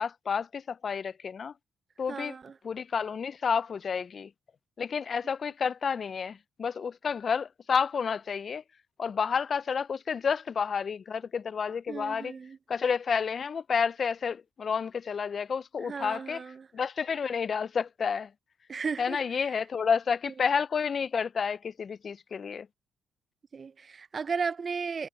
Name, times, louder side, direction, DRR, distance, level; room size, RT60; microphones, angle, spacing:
voice 1, 0.0-1.5 2.0-2.3 2.6-4.3 4.8-8.6 9.0-12.3 12.7-16.4 16.7-18.3 19.0-22.7, left 6 dB, 45° left, 0.3 m, -30 dB
voice 2, 2.1-2.5 11.9-12.6 15.8-16.7 18.7-19.5 23.5-25.1, right 5 dB, 40° right, 0.5 m, -35 dB
cardioid pair, 90°, 0 cm